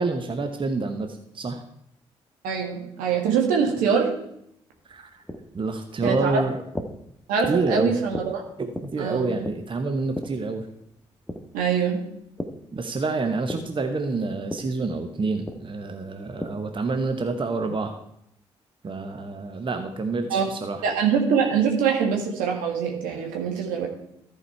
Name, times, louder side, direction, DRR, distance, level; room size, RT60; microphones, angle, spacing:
voice 1, 0.0-1.6 4.9-5.2 5.5-6.6 7.5-8.0 8.6-10.7 12.7-18.0 18.8-20.8, right 3 dB, 35° right, 6 dB, 1.0 m, -28 dB
voice 2, 2.4-4.1 6.0-6.4 7.3-8.4 9.0-9.3 11.5-12.0 20.3-20.5 20.8-23.9, right 6 dB, 75° right, 1 dB, 1.8 m, -23 dB
sound 1, 4.7-12.7 13.0-16.8, equal, 5° left, 1.3 m, -37 dB
13.5 x 4.9 x 4.6 m, 0.75 s
hypercardioid pair, 40°, 14 cm